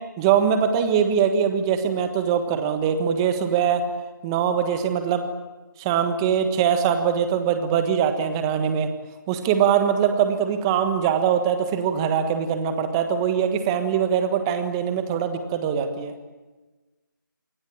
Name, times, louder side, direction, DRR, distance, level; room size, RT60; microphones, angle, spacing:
voice 1, 0.2-3.8 4.2-5.3 5.8-8.9 9.3-16.1, right 8 dB, 10° right, 8 dB, 1.4 m, -22 dB
27.5 x 21.0 x 8.8 m, 1.2 s
figure-of-eight pair, 165°, 11 cm